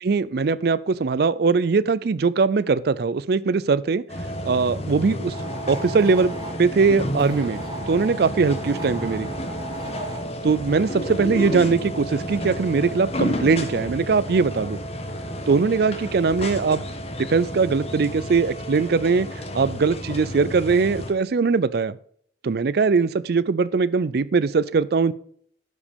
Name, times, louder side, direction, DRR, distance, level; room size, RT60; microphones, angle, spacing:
voice 1, 0.0-4.0 4.4-5.3 5.7-9.3 10.4-14.8 15.5-16.8 17.3-19.3 19.5-22.0 22.4-25.1, right 4 dB, 60° right, 17 dB, 0.4 m, -21 dB
sound 1, 4.1-21.1, equal, 35° left, 1.2 m, -31 dB
sound 2, 5.3-6.6 7.2-10.3, right 1 dB, 25° right, 1.0 m, -39 dB
12.0 x 5.1 x 5.2 m, 0.63 s
head